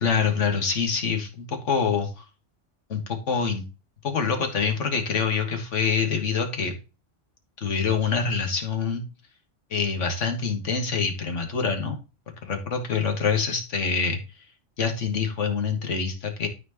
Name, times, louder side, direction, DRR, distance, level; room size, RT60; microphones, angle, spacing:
voice 1, 0.0-2.2 2.9-3.7 4.0-6.7 7.6-9.0 9.7-12.0 12.4-14.2 14.8-16.5, left 5 dB, 75° left, 4 dB, 1.8 m, -25 dB
12.5 x 4.5 x 2.9 m, 0.30 s
omnidirectional pair, 1.3 m